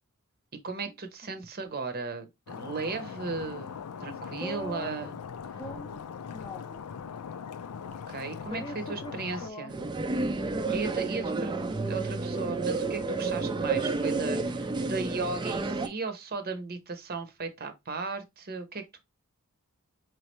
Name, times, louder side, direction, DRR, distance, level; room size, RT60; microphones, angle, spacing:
voice 1, 0.6-5.2 8.1-8.6 8.9-9.7 10.7-19.0, right 4 dB, 45° right, 0.8 m, -36 dB
Stream, 2.5-9.5, left 6 dB, 90° left, 0.4 m, -40 dB
voice 2, 4.4-5.1 5.6-6.9 8.5-9.1 9.4-9.7, equal, 20° left, 0.6 m, -41 dB
sound 1, 9.7-15.9, right 3 dB, 20° right, 0.4 m, -30 dB
4.6 x 3.1 x 3.1 m
head